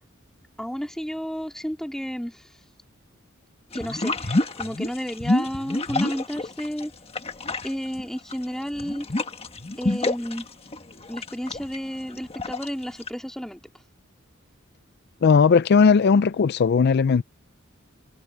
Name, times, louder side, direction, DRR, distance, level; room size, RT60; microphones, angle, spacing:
voice 1, 0.6-2.5 3.7-6.9 7.6-9.1 9.8-10.5 11.1-13.6, equal, 5° left, 2.5 m, -32 dB
sound 1, 3.7-6.8 7.1-13.1, left 2 dB, 30° left, 1.4 m, -28 dB
voice 2, 15.2-17.2, left 5 dB, 55° left, 0.4 m, -17 dB
head